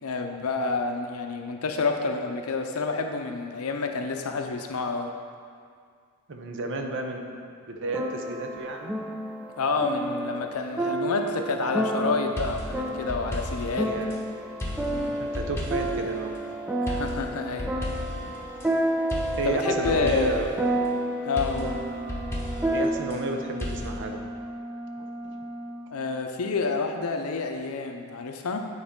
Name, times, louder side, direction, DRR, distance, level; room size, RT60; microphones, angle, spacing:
voice 1, 0.0-5.1 9.6-13.9 14.9-15.2 16.8-17.7 19.4-20.5 21.3-21.8 25.9-28.7, left 4 dB, 85° left, 4 dB, 0.6 m, -29 dB
voice 2, 6.3-7.4 7.7-9.0 10.8-10.9 13.8-14.1 15.2-16.4 18.3-18.4 19.4-20.5 22.7-24.2 25.0-25.4, right 2 dB, 60° right, 4 dB, 0.7 m, -32 dB
sound 1, 7.9-22.9, right 1 dB, 5° right, 0.4 m, -30 dB
sound 2, 12.4-14.2 14.6-16.1 16.9-18.7 19.1-20.6 21.4-23.2 23.6-23.9, left 1 dB, 10° left, 0.9 m, -34 dB
sound 3, 21.4-25.9, right 1 dB, 25° right, 1.5 m, -38 dB
9.4 x 4.2 x 3.6 m, 2.2 s
head